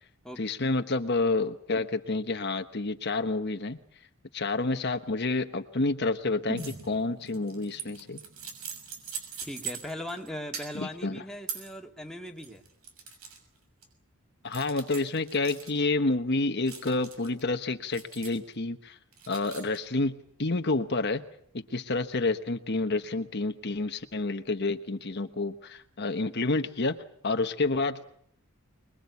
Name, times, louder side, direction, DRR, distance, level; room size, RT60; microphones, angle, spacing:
voice 1, 0.4-3.8 4.3-8.2 10.7-11.2 14.4-19.0 19.3-21.2 21.5-28.1, left 3 dB, 50° left, 7 dB, 1.2 m, -29 dB
sound 1, 6.5-10.5 10.8-10.9, right 1 dB, 50° right, 6.6 m, -46 dB
sound 2, 6.6-6.9 7.2-10.3 10.5-10.9 11.5-11.7 12.3-13.4 13.8-13.9 14.5-15.7 16.7-17.4 17.9-18.5 19.1-19.8, right 7 dB, 75° right, 6.5 m, -41 dB
voice 2, 9.4-12.6, left 1 dB, ahead, 1 dB, 2.5 m, -39 dB
26.0 x 22.0 x 8.3 m, 0.64 s
head